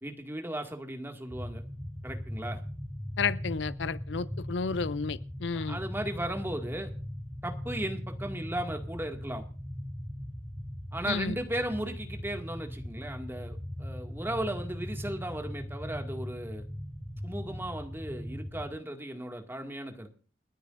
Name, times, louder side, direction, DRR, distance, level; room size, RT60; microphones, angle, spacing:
voice 1, 0.0-1.6 2.0-2.6 5.5-6.9 7.4-9.4 10.9-16.6 17.2-20.1, right 1 dB, 10° right, 2.1 m, -36 dB
sound 1, 1.3-18.7, equal, 5° left, 1.9 m, -39 dB
voice 2, 3.2-5.8 11.1-11.4, left 5 dB, 70° left, 0.5 m, -32 dB
29.5 x 10.0 x 2.6 m
head